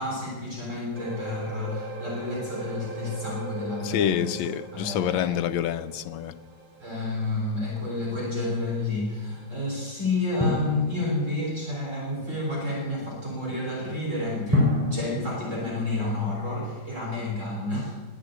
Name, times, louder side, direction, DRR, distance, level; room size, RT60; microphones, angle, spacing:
voice 1, 0.0-4.3 4.7-5.4 6.8-14.7 14.9-18.0, left 2 dB, 40° right, 4.1 m, -30 dB
sound 1, 0.9-13.6 14.0-14.2 14.7-14.8, right 2 dB, 65° right, 3.0 m, -43 dB
voice 2, 3.8-6.3, left 10 dB, 85° left, 1.5 m, -27 dB
Drum, 10.4-11.9 14.5-16.7, left 1 dB, 5° right, 3.0 m, -28 dB
20.5 x 8.3 x 8.2 m
omnidirectional pair, 2.1 m